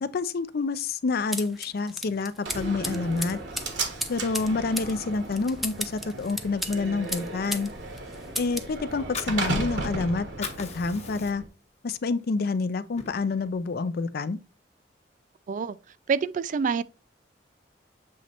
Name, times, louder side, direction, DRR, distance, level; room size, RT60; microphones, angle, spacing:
voice 1, 0.0-3.4 4.1-7.7 8.4-11.4 11.8-14.4, left 3 dB, 60° left, 0.5 m, -28 dB
sound 1, 1.3-7.7 8.0-8.7, equal, ahead, 0.6 m, -35 dB
Slam, 2.5-11.5, right 2 dB, 75° right, 1.4 m, -35 dB
Fire, 8.9-10.0 10.3-11.6 12.1-12.2 12.6-13.6, left 6 dB, 40° left, 1.0 m, -39 dB
voice 2, 16.1-16.8, right 5 dB, 45° right, 0.3 m, -26 dB
7.3 x 3.1 x 4.2 m
head